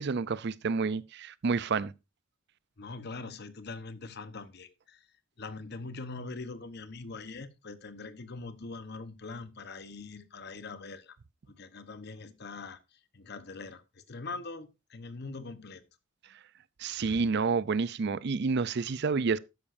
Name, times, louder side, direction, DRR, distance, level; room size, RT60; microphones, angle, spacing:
voice 1, 0.0-1.9 16.8-19.4, right 4 dB, 55° right, 0.5 m, -29 dB
voice 2, 2.8-5.1 5.4-11.2 11.5-12.8 13.1-15.8, left 3 dB, 55° left, 1.1 m, -42 dB
12.5 x 9.9 x 2.6 m
head